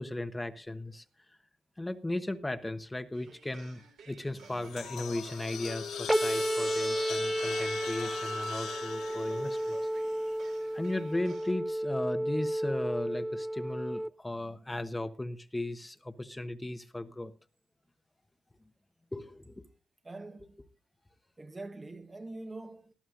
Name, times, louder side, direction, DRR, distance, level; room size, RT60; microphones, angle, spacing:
voice 1, 0.0-1.4 1.8-9.9 10.7-17.3 19.1-19.6, left 1 dB, 15° left, 1.0 m, -36 dB
sound 1, 3.1-11.5, right 5 dB, 70° right, 3.4 m, -55 dB
sound 2, 4.4-10.6, left 8 dB, 75° left, 1.3 m, -42 dB
sound 3, 6.1-14.1, right 1 dB, 5° right, 0.5 m, -32 dB
voice 2, 20.0-20.6 21.4-22.9, right 2 dB, 25° right, 1.1 m, -44 dB
20.5 x 12.0 x 2.6 m
supercardioid pair, 60°, 0 cm